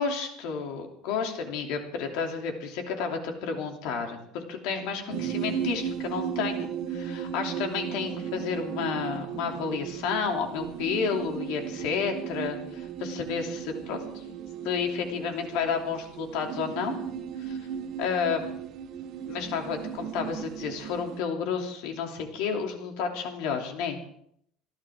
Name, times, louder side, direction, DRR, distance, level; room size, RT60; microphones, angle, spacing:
voice 1, 0.0-14.2 14.6-17.0 17.4-17.6 18.0-18.5 19.3-24.0, left 6 dB, 70° left, 3 dB, 3.0 m, -31 dB
sound 1, 5.1-21.2, right 8 dB, 45° right, 1.2 m, -36 dB
29.0 x 11.5 x 3.7 m, 0.69 s
cardioid pair, 165°, 0 cm